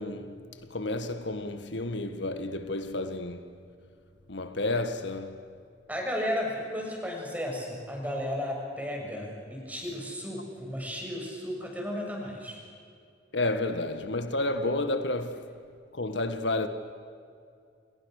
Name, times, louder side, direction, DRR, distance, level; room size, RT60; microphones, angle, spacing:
voice 1, 0.0-3.5 4.3-5.4 13.3-15.5 15.9-16.7, left 2 dB, 75° left, 1.7 m, -31 dB
voice 2, 5.9-12.6, equal, 10° right, 7.0 m, -34 dB
29.5 x 29.5 x 6.7 m
head